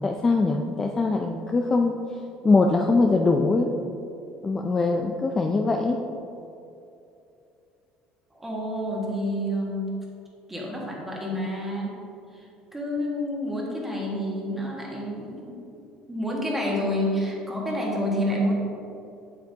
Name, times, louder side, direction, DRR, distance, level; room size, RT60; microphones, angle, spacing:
voice 1, 0.0-1.9 2.4-3.7 4.4-6.0, left 3 dB, 15° left, 2 dB, 0.4 m, -22 dB
voice 2, 8.3-9.9 10.5-12.0 12.3-15.6 16.1-18.5, equal, 10° right, -3 dB, 1.5 m, -29 dB
8.2 x 8.1 x 2.8 m, 2.7 s
cardioid pair, 155°, 3 cm